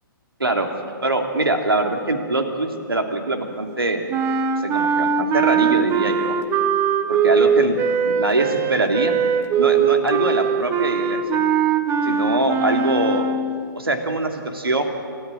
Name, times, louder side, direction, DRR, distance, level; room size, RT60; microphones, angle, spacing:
voice 1, 1.0-4.0 4.6-6.4 7.1-7.8 8.1-9.2 9.6-11.5 12.0-13.2 13.8-14.8, right 2 dB, 85° right, 5 dB, 2.9 m, -23 dB
sound 1, 4.1-13.6, right 6 dB, 20° right, 1.0 m, -21 dB
28.5 x 14.0 x 9.1 m, 2.3 s
figure-of-eight pair, 125°, 12 cm